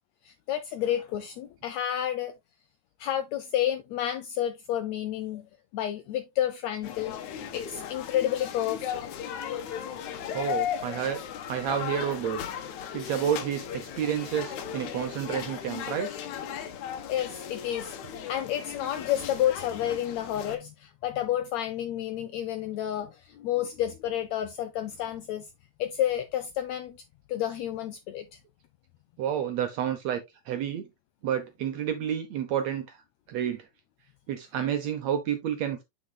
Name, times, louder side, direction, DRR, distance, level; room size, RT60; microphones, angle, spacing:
voice 1, 0.2-2.3 3.0-7.2 7.5-9.0 17.1-25.5 25.8-27.0 27.3-28.4, left 11 dB, 85° left, 1.5 m, -30 dB
sound 1, 6.8-20.6, left 9 dB, 70° left, 2.2 m, -36 dB
voice 2, 10.3-11.2 11.5-12.4 12.9-16.1 29.2-30.9 31.2-33.0 33.3-33.7 34.3-35.8, right 9 dB, 75° right, 1.6 m, -30 dB
7.5 x 7.1 x 2.3 m
omnidirectional pair, 3.9 m